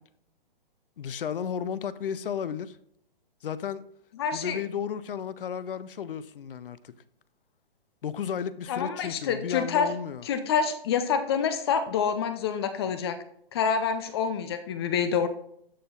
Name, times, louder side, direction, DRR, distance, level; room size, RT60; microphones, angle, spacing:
voice 1, 1.0-2.8 3.4-3.8 4.3-6.9 8.0-10.2, left 8 dB, 65° left, 0.7 m, -33 dB
voice 2, 4.2-4.6 8.7-9.9 10.2-13.2 13.5-15.3, left 6 dB, 25° left, 0.6 m, -27 dB
12.5 x 4.4 x 3.7 m
hypercardioid pair, 150°, 29 cm